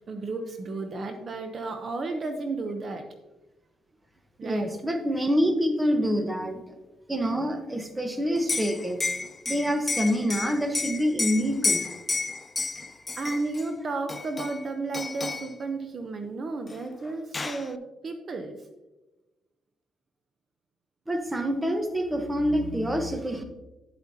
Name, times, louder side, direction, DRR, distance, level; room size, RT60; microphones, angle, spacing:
voice 1, 0.1-3.1 4.4-4.7 13.2-18.6, right 3 dB, 45° right, 6 dB, 0.8 m, -33 dB
voice 2, 4.4-6.6 7.1-9.0 9.5-11.8 21.1-23.4, equal, 15° right, 6 dB, 1.1 m, -26 dB
Liquid, 8.4-13.7 14.1-14.7 14.9-15.5 16.7-16.8 17.1-17.7, left 3 dB, 25° left, 0.4 m, -31 dB
9.4 x 8.2 x 2.8 m, 1.0 s
cardioid pair, 90°, 0 cm